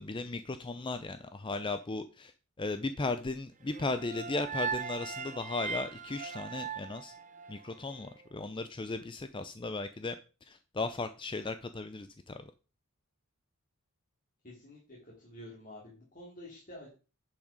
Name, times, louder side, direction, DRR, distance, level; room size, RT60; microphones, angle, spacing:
voice 1, 0.0-2.3 2.6-7.1 7.5-10.2 10.5-12.4, left 3 dB, 25° left, 11 dB, 0.5 m, -36 dB
sound 1, 3.7-7.9, right 6 dB, 35° right, 0.8 m, -39 dB
voice 2, 14.4-16.9, left 1 dB, 40° left, -5 dB, 3.6 m, -49 dB
10.5 x 6.1 x 5.2 m, 0.33 s
head